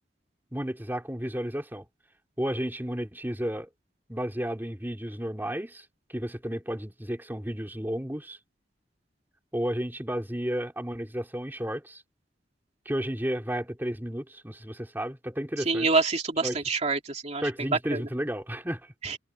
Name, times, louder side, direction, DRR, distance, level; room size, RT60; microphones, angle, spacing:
voice 1, 0.5-1.9 2.4-3.7 4.1-8.4 9.5-12.0 12.8-15.9 16.4-16.6 17.4-18.9, equal, 10° right, 2.8 m, -32 dB
voice 2, 15.6-18.0 19.0-19.2, right 4 dB, 40° right, 2.7 m, -27 dB
head